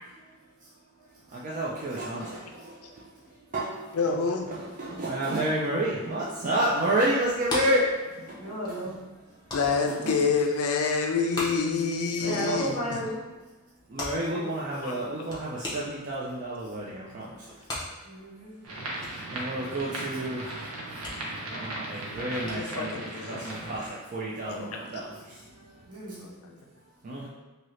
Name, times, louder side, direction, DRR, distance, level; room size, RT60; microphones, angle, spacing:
voice 1, 1.3-3.1 3.5-4.1 4.5-8.8 9.7-10.2 12.3-12.8 13.9-17.5 19.0-26.0 27.0-27.3, right 1 dB, 35° right, -6 dB, 0.3 m, -31 dB
voice 2, 3.9-4.5 9.5-12.8 14.8-15.3 17.1-17.3 22.5-23.5 24.5-24.8 26.2-26.5, left 5 dB, 85° left, 2 dB, 0.4 m, -28 dB
sound 1, 7.2-24.0, left 1 dB, 20° left, 0.5 m, -42 dB
voice 3, 8.4-9.1 12.2-13.2 14.3-14.5 18.0-18.5 25.9-26.2, equal, 70° right, -9 dB, 1.4 m, -34 dB
sound 2, 18.6-23.9, right 1 dB, 85° right, 0.7 m, -37 dB
2.7 x 2.6 x 3.1 m, 1.1 s
head